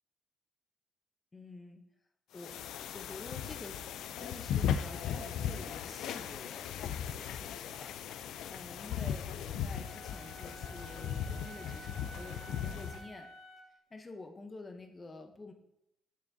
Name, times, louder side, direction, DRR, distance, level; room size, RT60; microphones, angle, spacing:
voice 1, 1.3-1.9 2.3-2.6 2.9-7.9 8.5-13.3 13.9-15.5, left 3 dB, 25° left, 5 dB, 0.8 m, -49 dB
sound 1, 2.4-13.1, left 9 dB, 85° left, 0.3 m, -37 dB
Wind instrument woodwind instrument, 9.7-13.8, right 2 dB, 65° right, 1.2 m, -51 dB
7.2 x 6.0 x 2.7 m, 0.84 s
cardioid pair, 90°, 0 cm